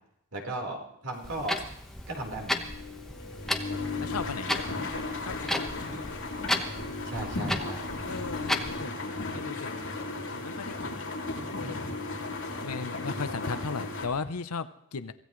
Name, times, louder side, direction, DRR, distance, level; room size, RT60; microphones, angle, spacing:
voice 1, 0.3-1.6 2.1-2.6 7.0-7.9, right 1 dB, 90° right, 1 dB, 4.2 m, -36 dB
sound 1, 1.1-1.7 2.0-14.1, left 3 dB, 60° left, 3.6 m, -35 dB
Clock, 1.2-8.8, left 1 dB, ahead, 1.2 m, -35 dB
voice 2, 4.0-4.6 5.3-6.1 8.1-9.7 10.3-11.0 11.4-11.9 12.6-15.1, left 4 dB, 90° left, 12 dB, 0.8 m, -37 dB
24.5 x 16.0 x 3.2 m, 0.75 s
head